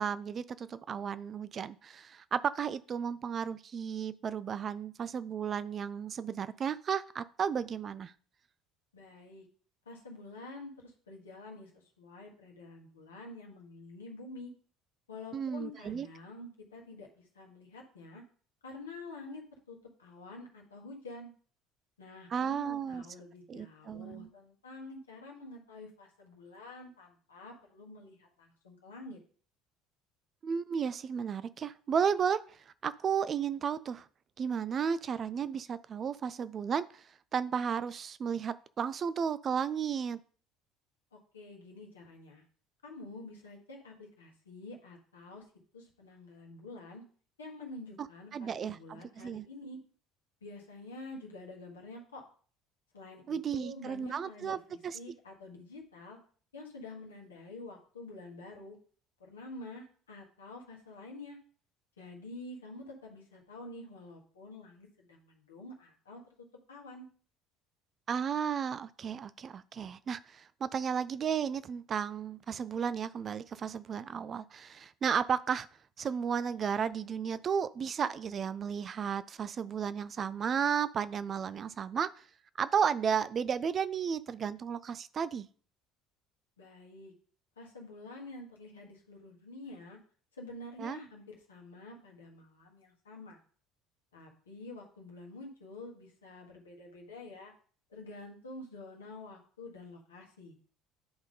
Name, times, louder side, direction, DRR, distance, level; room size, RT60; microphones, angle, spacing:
voice 1, 0.0-8.1 15.3-16.1 22.3-23.0 23.5-24.3 30.4-32.6 32.8-34.1 34.4-37.0 37.3-40.2 48.3-49.4 53.3-54.6 54.8-55.0 68.1-75.7 76.0-82.1 82.6-85.5 90.8-91.0, right 7 dB, 40° right, 0.4 m, -33 dB
voice 2, 8.9-9.5 9.8-14.5 15.1-18.2 18.6-19.4 19.7-21.3 22.0-29.2 41.1-42.4 42.8-45.4 45.7-47.0 47.4-49.8 50.4-52.3 52.9-56.2 56.5-58.8 59.2-61.4 62.0-66.2 66.7-67.1 86.6-87.1 87.6-90.0 90.3-93.4 94.1-97.5 97.9-100.5, left 2 dB, 85° left, 1.5 m, -48 dB
10.5 x 3.7 x 3.8 m
figure-of-eight pair, 60°, 0 cm